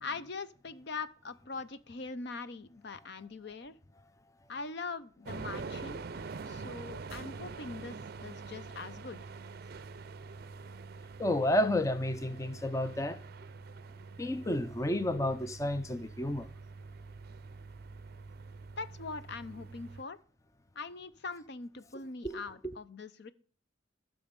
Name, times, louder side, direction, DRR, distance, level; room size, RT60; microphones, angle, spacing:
voice 1, 0.0-3.8 4.5-6.1 6.5-9.2 18.8-20.2 20.8-23.3, left 4 dB, 55° left, 0.6 m, -42 dB
sound 1, 5.3-20.0, right 4 dB, 50° right, 0.5 m, -45 dB
voice 2, 11.2-13.2 14.2-16.5 22.2-22.4, left 1 dB, 15° left, 0.5 m, -31 dB
13.5 x 6.3 x 5.3 m
head